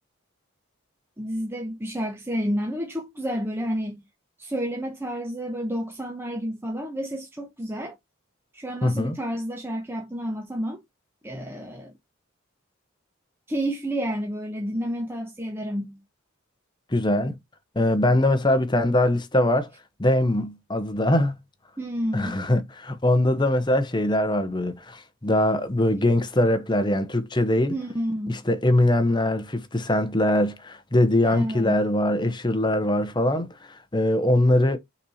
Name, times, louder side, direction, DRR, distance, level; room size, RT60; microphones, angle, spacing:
voice 1, 1.2-4.0 4.4-7.9 8.5-10.8 11.2-11.9 13.5-16.0 21.8-22.4 27.7-28.4 31.2-31.8, equal, 10° right, 1.0 m, -30 dB
voice 2, 8.8-9.2 16.9-17.4 17.7-19.7 20.0-21.3 22.1-27.7 28.3-34.8, left 1 dB, 20° left, 0.9 m, -22 dB
6.0 x 4.2 x 4.1 m
head